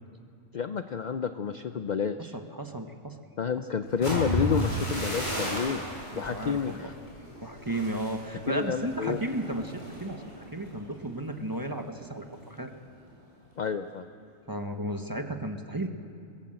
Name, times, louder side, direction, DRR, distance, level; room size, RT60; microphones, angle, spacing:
voice 1, 0.5-2.3 3.4-5.8 6.1-6.9 8.5-9.2 13.6-14.0, left 6 dB, 55° left, 9 dB, 0.5 m, -30 dB
voice 2, 2.3-3.2 6.1-6.9 7.4-10.2 10.5-12.7 14.5-15.9, right 1 dB, 15° right, 5 dB, 1.0 m, -34 dB
sound 1, 3.9-11.7 12.1-12.4 12.8-13.2, equal, 35° left, 6.2 m, -35 dB
22.0 x 17.5 x 7.7 m, 2.5 s
omnidirectional pair, 1.4 m